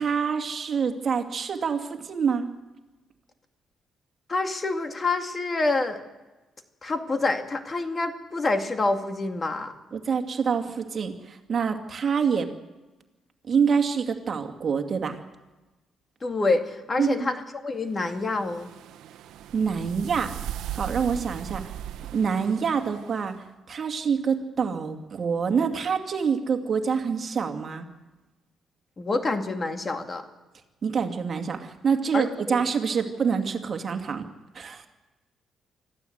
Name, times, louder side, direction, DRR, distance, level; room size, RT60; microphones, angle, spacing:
voice 1, 0.0-2.5 9.9-12.5 13.5-15.2 17.0-17.4 19.5-20.3 20.7-21.7 22.1-23.3 23.7-27.9 30.8-34.3 34.5-34.9, right 6 dB, 45° right, 5 dB, 2.2 m, -26 dB
voice 2, 4.3-6.0 6.8-9.7 16.2-17.4 17.6-18.7 29.0-30.2 32.1-32.6, left 3 dB, 30° left, 6 dB, 2.2 m, -27 dB
sound 1, 18.0-23.3, right 11 dB, 85° right, 0.9 m, -38 dB
25.0 x 14.5 x 8.0 m, 1.1 s
cardioid pair, 90°, 0 cm